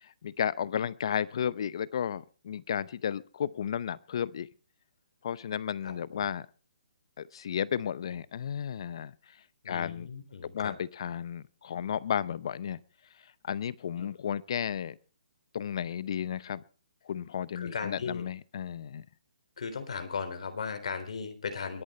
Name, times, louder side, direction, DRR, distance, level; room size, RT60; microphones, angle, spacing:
voice 1, 0.0-4.5 5.2-6.5 7.2-9.1 9.7-10.1 10.4-12.8 13.4-15.0 15.5-16.6 17.0-19.1, left 8 dB, 45° left, 0.7 m, -33 dB
voice 2, 5.8-6.3 9.6-10.7 14.0-14.1 17.6-18.2 19.6-21.8, left 5 dB, 60° left, 3.6 m, -37 dB
22.5 x 10.5 x 4.3 m
hypercardioid pair, 170°, 4 cm